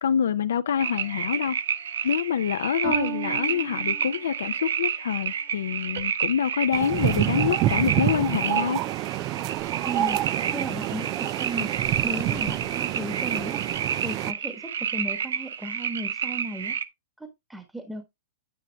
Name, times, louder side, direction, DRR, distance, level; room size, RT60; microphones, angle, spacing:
voice 1, 0.0-1.6 2.0-8.8, left 8 dB, 75° left, 0.6 m, -26 dB
sound 1, 0.8-1.5 2.8-4.4 6.0-6.1, right 13 dB, 55° right, 2.8 m, -36 dB
sound 2, 0.8-16.9, right 8 dB, 75° right, 1.0 m, -30 dB
sound 3, 6.7-14.3, right 14 dB, 40° right, 0.5 m, -28 dB
voice 2, 9.8-10.2 10.5-11.8 12.0-13.6 14.0-16.8 17.2-18.1, right 1 dB, 5° right, 1.4 m, -35 dB
9.8 x 9.2 x 2.3 m
hypercardioid pair, 115°, 0 cm